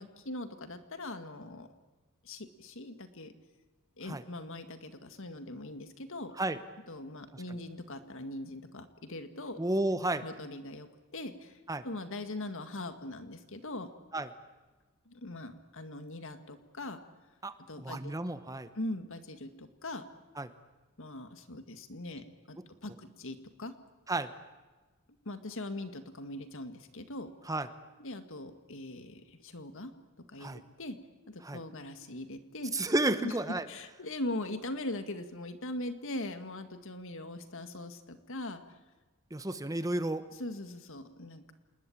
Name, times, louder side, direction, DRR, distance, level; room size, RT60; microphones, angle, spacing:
voice 1, 0.0-1.7 2.2-3.3 4.0-6.3 6.9-9.6 10.2-11.6 11.8-13.9 15.1-17.0 17.7-18.1 18.8-20.1 21.0-23.7 25.3-27.3 28.0-29.9 30.3-31.0 31.3-32.7 33.2-33.3 33.7-38.6 40.3-41.5, left 1 dB, 60° left, 9 dB, 2.0 m, -41 dB
voice 2, 9.6-10.2 11.7-11.8 14.1-14.3 17.4-18.7 20.4-20.5 24.1-24.3 27.5-27.7 30.4-30.6 31.4-31.6 32.7-33.7 39.3-40.2, right 2 dB, 15° right, 11 dB, 1.0 m, -32 dB
27.5 x 20.0 x 8.7 m, 1.3 s
head